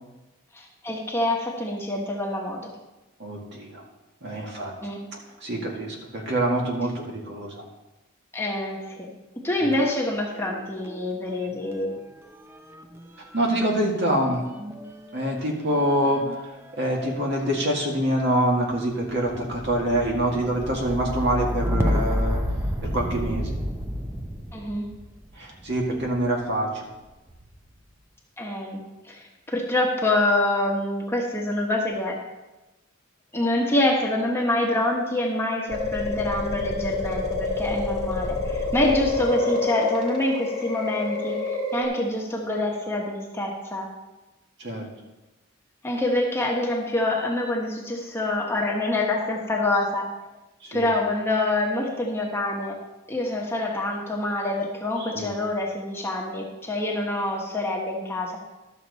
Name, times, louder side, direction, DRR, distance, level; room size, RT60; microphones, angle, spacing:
voice 1, 0.5-2.7 4.8-5.0 8.3-9.1 9.4-11.9 24.5-24.9 28.4-28.8 29.1-32.2 33.3-43.9 45.8-50.1 50.7-52.8 53.1-58.4, left 1 dB, 10° left, -1 dB, 1.1 m, -26 dB
voice 2, 3.2-3.8 4.2-4.7 5.4-7.6 9.6-9.7 13.3-14.4 15.1-22.4 22.8-23.5 25.4-26.8 44.6-44.9 50.6-50.9 55.0-55.3, right 1 dB, 55° right, -1 dB, 2.0 m, -25 dB
sound 1, 9.7-11.0 11.3-26.3 27.1-27.7, equal, 10° right, 0.5 m, -32 dB
sound 2, 35.7-41.8, left 3 dB, 30° right, 2.1 m, -28 dB
12.0 x 6.6 x 4.1 m, 1.1 s
head